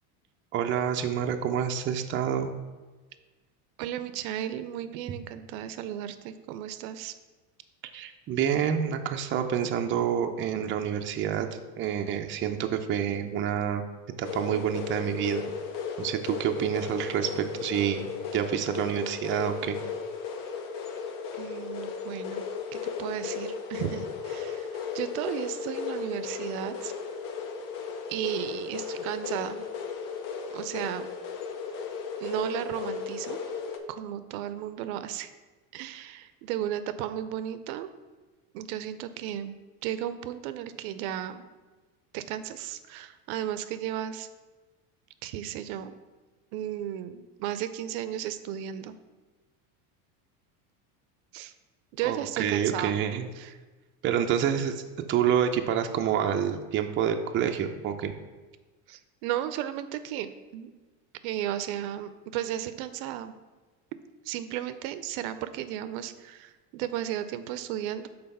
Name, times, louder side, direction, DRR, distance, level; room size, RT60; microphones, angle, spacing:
voice 1, 0.5-2.6 7.9-11.5 11.8-13.8 14.2-15.4 16.0-19.8 52.0-53.3 54.0-54.8 55.1-58.1, right 9 dB, 30° right, 5 dB, 0.5 m, -28 dB
voice 2, 3.8-7.1 21.4-22.5 22.7-26.9 28.1-29.6 30.5-31.1 32.2-33.4 33.9-35.3 35.7-37.9 38.5-41.4 42.1-44.3 45.2-45.9 46.5-48.9 51.3-51.5 51.9-52.9 53.4-53.5 58.9-60.7 61.2-63.4 64.2-68.1, right 11 dB, 70° right, 12 dB, 0.6 m, -34 dB
sound 1, 14.2-33.8, left 6 dB, 45° left, 0.9 m, -35 dB
5.6 x 4.0 x 5.3 m, 1.3 s
supercardioid pair, 110°, 44 cm